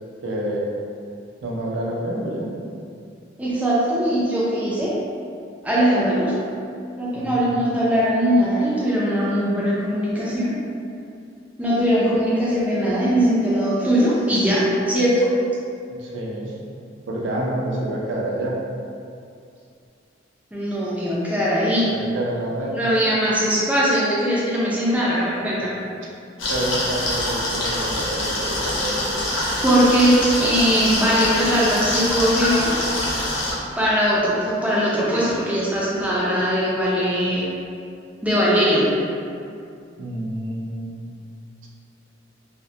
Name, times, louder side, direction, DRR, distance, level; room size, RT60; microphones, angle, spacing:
voice 1, 0.2-0.7 1.4-2.5 7.1-7.6 16.0-16.5 17.1-18.6 21.7-22.8 26.5-29.2 40.0-41.2 41.6-41.7, right 1 dB, 75° right, -3 dB, 0.4 m, -28 dB
voice 2, 3.4-4.9 5.6-6.3 7.0-10.6 11.6-15.3 20.5-21.9 22.7-25.8 29.6-32.7 33.8-37.5 38.2-38.9, equal, 5° right, -7 dB, 0.4 m, -20 dB
sound 1, 26.4-33.5, left 1 dB, 80° left, 0.6 m, -25 dB
2.2 x 2.1 x 2.7 m, 2.4 s
head